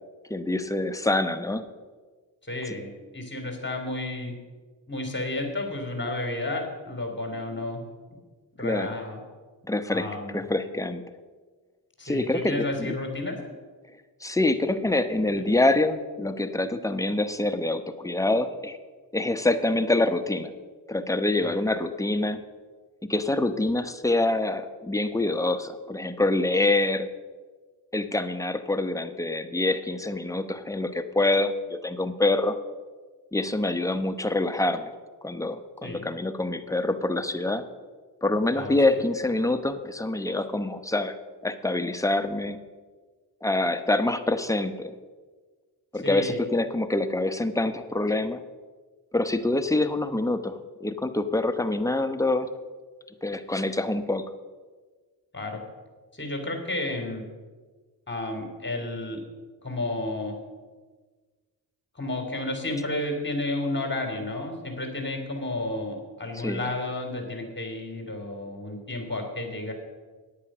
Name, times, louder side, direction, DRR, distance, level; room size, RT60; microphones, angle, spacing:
voice 1, 0.3-1.6 8.6-9.0 9.7-10.1 10.3-11.0 12.0-12.9 14.2-18.8 19.1-20.5 20.9-22.4 23.1-27.1 27.9-32.6 33.3-34.9 35.2-37.6 38.2-41.1 41.4-42.6 43.4-44.9 45.9-48.4 49.1-52.5 53.2-54.2 66.4-66.7, left 2 dB, 5° left, 8 dB, 1.0 m, -26 dB
voice 2, 2.4-2.9 3.1-4.3 4.9-7.8 8.1-8.2 8.6-9.2 9.9-10.4 12.0-13.4 15.3-15.4 21.4-21.6 35.8-36.1 38.5-38.8 46.0-46.4 55.3-55.6 56.1-57.3 58.1-59.2 59.6-60.4 62.0-69.7, left 2 dB, 25° left, 3 dB, 3.4 m, -32 dB
9.3 x 8.6 x 6.3 m, 1.4 s
supercardioid pair, 40°, 46 cm